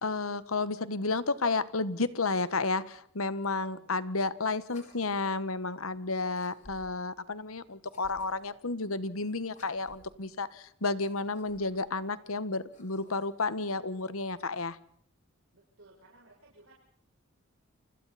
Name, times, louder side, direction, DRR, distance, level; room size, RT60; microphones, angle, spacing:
voice 1, 0.0-14.8, left 3 dB, 90° left, 14 dB, 1.4 m, -32 dB
sound 1, 4.6-5.5 6.3-7.1 7.8-8.6 9.5-10.2 10.9-11.9 12.5-13.5, left 1 dB, 35° left, 6.7 m, -58 dB
voice 2, 15.5-16.7, right 2 dB, 75° right, -4 dB, 6.9 m, -58 dB
30.0 x 25.5 x 4.2 m, 0.63 s
head